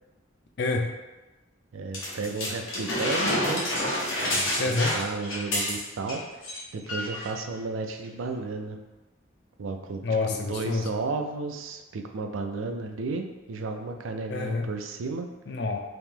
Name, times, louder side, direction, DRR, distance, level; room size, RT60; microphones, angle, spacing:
voice 1, 0.6-0.9 4.6-5.0 10.0-10.9 14.3-14.7 15.5-15.8, left 3 dB, 55° left, 3 dB, 0.4 m, -27 dB
voice 2, 1.7-3.6 4.3-8.8 9.6-10.0 10.5-15.3, right 3 dB, 90° right, 5 dB, 0.4 m, -33 dB
sound 1, 1.9-6.2 6.4-6.6 6.9-7.3 8.0-8.1, left 1 dB, 90° left, 1.1 m, -28 dB
3.0 x 2.8 x 3.6 m, 1.1 s
head